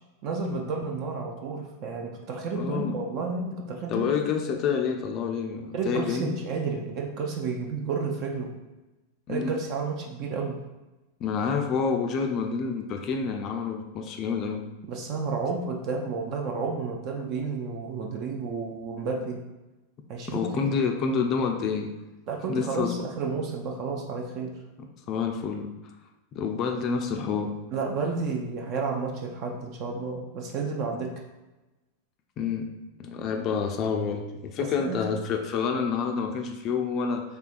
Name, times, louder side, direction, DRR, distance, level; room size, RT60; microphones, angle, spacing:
voice 1, 0.2-4.1 5.7-8.5 9.3-10.6 14.8-19.4 20.1-20.8 22.3-24.5 27.7-31.1 34.6-35.1, right 4 dB, 40° right, 1 dB, 0.5 m, -31 dB
voice 2, 2.6-2.9 3.9-6.3 9.3-9.6 11.2-14.6 20.3-21.9 22.5-22.9 25.1-25.7 26.3-27.6 32.4-32.7 33.0-37.2, left 6 dB, 35° left, 4 dB, 0.4 m, -28 dB
4.5 x 3.4 x 2.5 m, 1.1 s
figure-of-eight pair, 90°, 0 cm